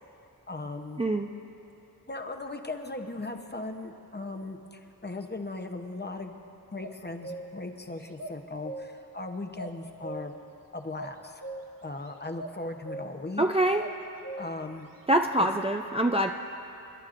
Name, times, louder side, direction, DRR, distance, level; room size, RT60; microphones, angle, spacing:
voice 1, 0.5-1.0 2.1-6.4 6.7-10.4 10.7-11.4 11.8-13.5 14.4-14.9 15.4-15.5, left 2 dB, 25° left, 5 dB, 0.9 m, -38 dB
voice 2, 1.0-1.3 13.4-13.8 15.1-16.3, right 1 dB, 15° right, 2 dB, 0.4 m, -24 dB
sound 1, 6.8-7.7 8.2-9.1 9.6-10.5 11.0-12.0 12.4-12.6 12.8-13.3 13.8-14.7, right 2 dB, 65° right, 0.8 m, -40 dB
29.0 x 11.5 x 2.5 m, 2.8 s
wide cardioid pair, 80°, 37 cm